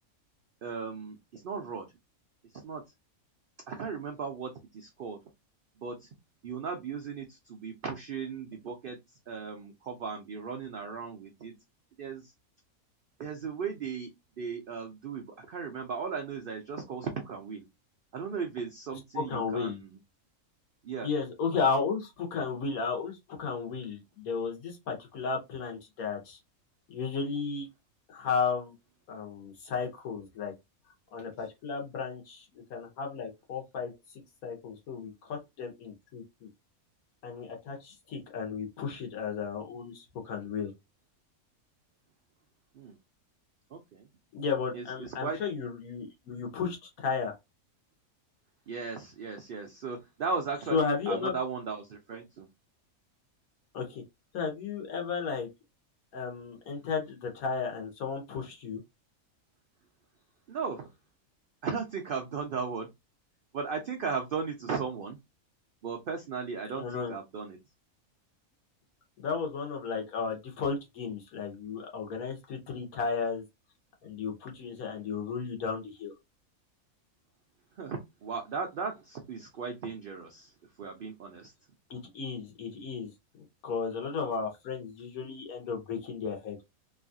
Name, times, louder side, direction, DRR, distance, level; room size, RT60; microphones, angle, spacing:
voice 1, 0.6-1.9 2.6-2.8 3.7-5.2 5.8-6.1 6.4-9.0 9.3-11.5 12.0-12.3 13.2-17.7 18.1-20.0 20.8-21.1 42.7-43.0 43.7-44.1 44.7-45.4 48.7-52.5 60.5-60.9 61.6-62.9 63.5-65.2 65.8-67.6 77.8-81.5, right 5 dB, 90° right, 0.4 m, -36 dB
voice 2, 19.1-19.8 21.0-26.4 26.9-27.7 28.1-28.7 29.1-30.5 31.1-36.5 37.2-40.7 44.3-47.4 50.7-51.3 53.7-54.0 54.3-55.5 56.1-58.8 66.7-67.1 69.2-73.4 74.0-76.1 81.9-83.1 83.4-86.6, left 5 dB, 75° left, 1.4 m, -34 dB
3.0 x 2.4 x 2.5 m
omnidirectional pair, 1.5 m